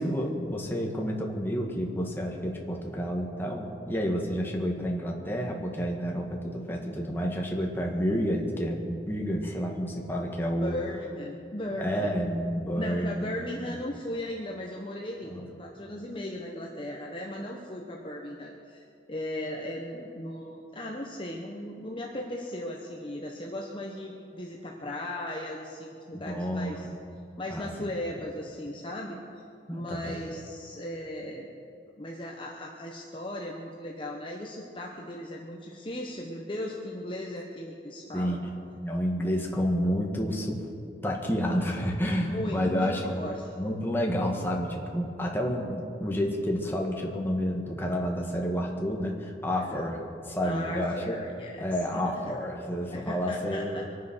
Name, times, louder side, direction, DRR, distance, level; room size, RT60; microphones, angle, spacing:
voice 1, 0.0-10.8 11.8-13.3 13.6-13.7 15.3-15.5 26.1-26.7 27.5-27.7 29.7-30.2 38.1-38.4 38.8-40.7 41.0-43.3 43.6-51.2 51.6-53.8, equal, 10° left, -1 dB, 1.8 m, -30 dB
voice 2, 10.6-12.1 12.7-15.3 15.6-26.9 27.4-29.2 29.7-31.5 32.0-38.4 42.2-43.4 49.5-49.8 50.4-51.6 51.9-52.1 52.9-53.8, left 1 dB, 30° left, -1 dB, 1.2 m, -37 dB
24.0 x 9.4 x 6.3 m, 2.5 s
head